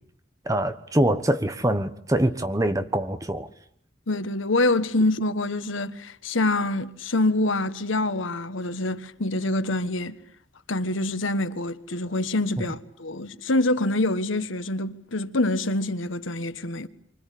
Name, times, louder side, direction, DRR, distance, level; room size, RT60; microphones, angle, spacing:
voice 1, 0.4-3.5 12.6-12.7, right 1 dB, 15° right, 1.1 m, -24 dB
voice 2, 4.1-10.1 10.7-16.9, left 2 dB, 85° left, 1.4 m, -25 dB
28.0 x 25.0 x 8.5 m
head